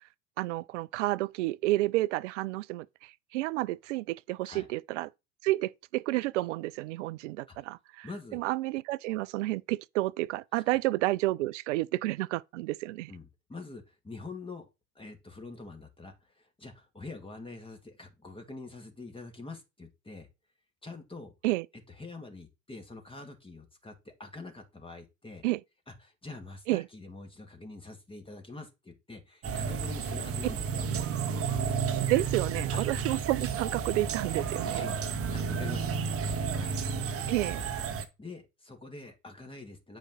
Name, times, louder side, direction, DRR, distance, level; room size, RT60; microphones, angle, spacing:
voice 1, 0.4-5.1 5.4-8.1 8.3-13.1 21.4-21.7 25.4-25.6 26.7-26.8 32.1-34.9 37.3-37.6, right 18 dB, 70° right, 0.5 m, -30 dB
voice 2, 8.0-8.4 10.5-10.8 13.1-14.7 15.0-20.3 20.8-21.3 21.9-25.4 25.9-30.9 32.7-32.9 34.6-36.0 36.5-36.8 38.2-40.0, left 3 dB, 15° left, 2.1 m, -45 dB
sound 1, 29.4-38.1, right 6 dB, 35° right, 1.4 m, -32 dB
8.8 x 5.1 x 3.9 m
hypercardioid pair, 80°, 38 cm